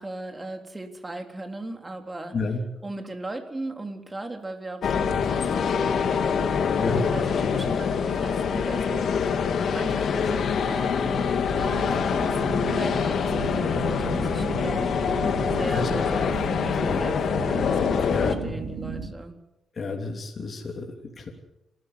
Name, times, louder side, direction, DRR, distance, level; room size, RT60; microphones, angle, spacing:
voice 1, 0.0-2.5 2.8-6.8 7.1-9.2 9.6-16.3 16.6-19.4, right 2 dB, 20° right, 5 dB, 3.7 m, -38 dB
sound 1, 4.8-18.3, left 6 dB, 65° left, 2.2 m, -25 dB
sound 2, 11.5-19.1, right 5 dB, 85° right, 4.3 m, -35 dB
voice 2, 18.1-18.5 19.8-20.8 21.2-21.3, left 4 dB, 45° left, 1 dB, 3.3 m, -30 dB
27.0 x 14.0 x 8.3 m, 0.90 s
cardioid pair, 90°, 0 cm